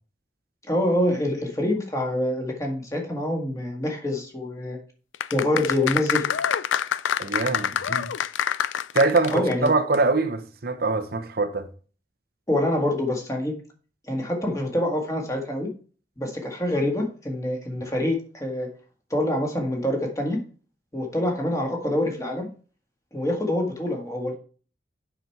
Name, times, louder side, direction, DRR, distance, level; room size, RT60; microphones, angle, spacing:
voice 1, 0.7-4.8 5.3-6.2 9.3-9.7 12.5-13.5 14.1-15.7 16.2-18.7 19.1-20.4 20.9-22.5 23.1-24.3, left 1 dB, 15° left, 1.8 m, -26 dB
sound 1, 5.1-9.7 9.9-10.0, left 9 dB, 85° left, 0.4 m, -26 dB
voice 2, 7.2-8.1 8.9-11.7, right 3 dB, 55° right, 0.8 m, -23 dB
8.0 x 5.9 x 4.6 m
head